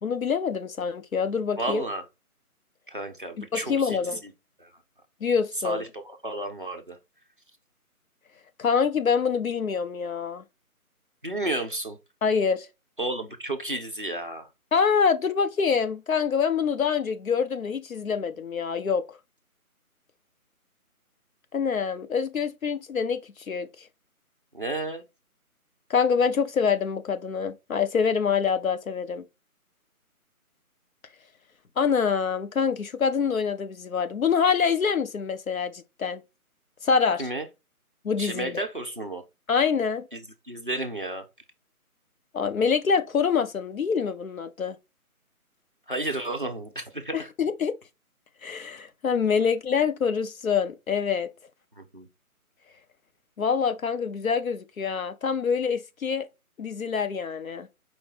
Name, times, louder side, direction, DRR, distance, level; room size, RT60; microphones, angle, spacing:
voice 1, 0.0-1.8 3.4-4.2 5.2-5.8 8.6-10.4 12.2-12.7 14.7-19.2 21.5-23.2 23.5-23.7 25.9-29.2 31.8-36.2 36.8-37.2 38.0-38.6 39.5-40.1 42.3-44.8 47.1-47.8 48.4-51.3 53.4-56.3 56.6-57.7, left 6 dB, 65° left, 0.7 m, -25 dB
voice 2, 1.6-2.1 2.9-4.3 4.6-4.7 5.6-7.0 11.2-12.0 13.0-14.5 24.5-25.0 37.2-37.5 38.2-39.2 40.1-41.2 45.9-47.3 51.7-52.1, right 2 dB, 35° right, 0.6 m, -32 dB
4.7 x 2.6 x 3.5 m
figure-of-eight pair, 170°, 44 cm